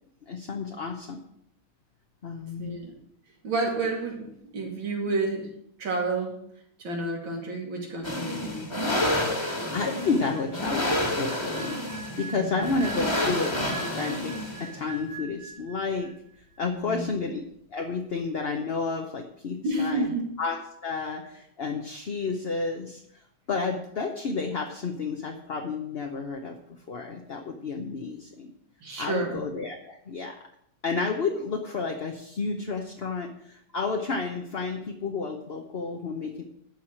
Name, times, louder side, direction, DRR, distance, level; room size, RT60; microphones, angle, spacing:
voice 1, 0.3-1.2 2.2-2.8 9.7-11.7 12.2-16.1 16.6-17.4 17.7-20.1 20.4-20.6 20.8-23.0 23.5-28.5 29.0-30.4 30.8-36.4, left 4 dB, 45° left, 2 dB, 0.8 m, -31 dB
voice 2, 2.6-2.9 3.4-5.5 5.8-6.4 6.8-8.7 12.3-12.8 16.7-17.1 19.6-20.3 28.8-29.4, right 2 dB, 80° right, 0 dB, 3.2 m, -30 dB
sound 1, 8.0-14.8, left 1 dB, 15° left, 1.6 m, -29 dB
sound 2, 9.9-16.3 16.6-16.8, right 4 dB, 70° left, 4.1 m, -43 dB
12.0 x 4.8 x 8.6 m, 0.73 s
omnidirectional pair, 2.1 m